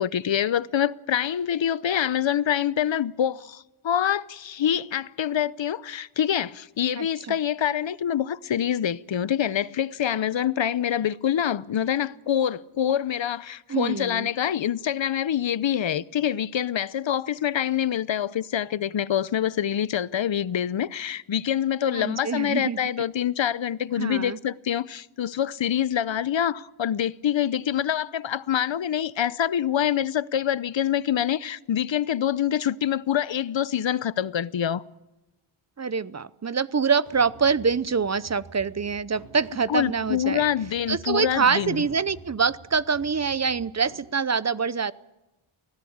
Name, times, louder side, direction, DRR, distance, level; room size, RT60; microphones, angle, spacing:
voice 1, 0.0-34.8 39.7-41.8, left 10 dB, 65° left, 0.8 m, -26 dB
voice 2, 7.0-7.4 13.7-14.3 21.9-22.8 24.0-24.4 35.8-40.5 40.9-44.9, right 5 dB, 35° right, 0.7 m, -25 dB
sound 1, 37.0-44.1, right 4 dB, 50° right, 4.2 m, -48 dB
24.0 x 17.0 x 8.7 m
wide cardioid pair, 95°, 50 cm